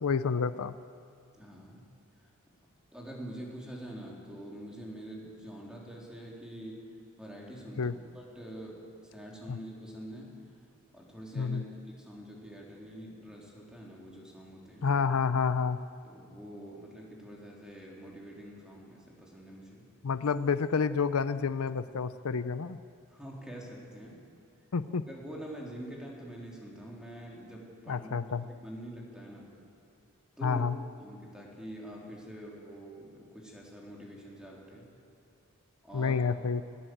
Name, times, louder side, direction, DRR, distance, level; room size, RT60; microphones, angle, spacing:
voice 1, 0.0-0.7 7.8-7.9 9.5-9.6 11.3-11.6 14.8-15.8 20.0-22.8 24.7-25.0 27.9-28.5 30.4-30.8 35.9-36.6, left 5 dB, 80° left, 13 dB, 0.6 m, -29 dB
voice 2, 1.4-1.8 2.9-6.8 7.2-10.4 10.9-11.6 11.9-14.9 16.0-19.9 23.1-24.2 25.1-29.6 30.4-30.7 31.0-34.9 35.8-36.2, equal, 5° right, -3 dB, 3.8 m, -45 dB
20.0 x 18.5 x 7.9 m, 2.4 s
head